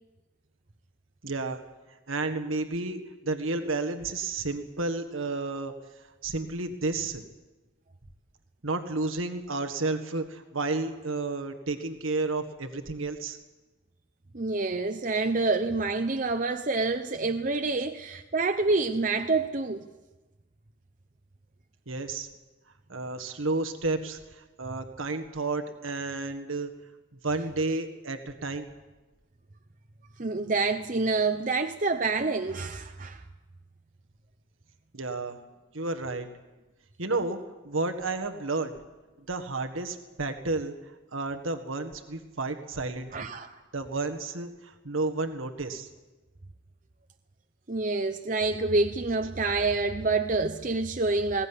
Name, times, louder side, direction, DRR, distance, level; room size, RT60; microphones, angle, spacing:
voice 1, 1.2-1.6 2.1-5.7 6.2-7.2 8.6-13.4 21.9-22.3 22.9-26.7 27.1-28.7 34.9-35.4 35.7-36.3 37.0-37.4 37.6-38.7 39.3-40.7 41.1-43.3 43.7-45.9, right 3 dB, 85° right, 1.7 m, -31 dB
voice 2, 14.3-19.9 30.2-33.2 43.1-43.6 47.7-51.5, right 3 dB, 40° right, 0.8 m, -27 dB
21.0 x 17.5 x 9.9 m
head